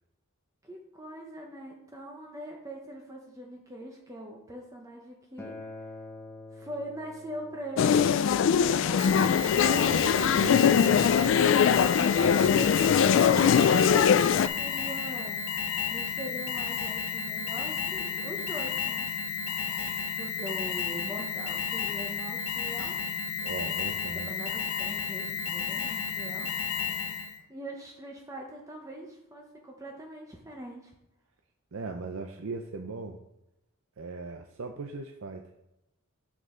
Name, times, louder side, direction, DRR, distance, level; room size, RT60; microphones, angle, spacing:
voice 1, 0.6-5.5 6.5-8.3 8.6-10.5 12.0-15.4 15.9-19.1 20.2-23.0 24.1-26.5 27.5-30.9, right 1 dB, 15° right, 0 dB, 0.8 m, -42 dB
Acoustic guitar, 5.4-10.6, left 2 dB, 10° left, 0.9 m, -48 dB
sound 1, 7.8-14.5, left 7 dB, 60° left, 0.3 m, -22 dB
Alarm, 9.0-27.4, left 6 dB, 85° left, 1.0 m, -32 dB
voice 2, 9.6-11.1 23.4-24.3 31.7-33.2 34.0-35.5, right 3 dB, 75° right, 4 dB, 0.6 m, -38 dB
7.0 x 6.6 x 3.8 m, 0.90 s
head